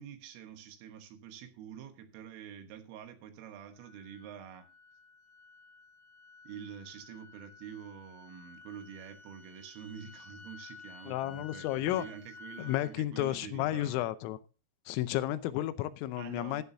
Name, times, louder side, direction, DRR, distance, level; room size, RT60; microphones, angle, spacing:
voice 1, 0.0-4.7 6.5-14.1 16.2-16.6, right 8 dB, 80° right, 3.8 m, -47 dB
sound 1, 3.8-12.9, left 4 dB, 55° left, 3.5 m, -53 dB
voice 2, 11.1-12.1 12.6-14.4 14.9-16.6, left 14 dB, 85° left, 3.4 m, -32 dB
14.0 x 11.5 x 2.7 m
omnidirectional pair, 5.8 m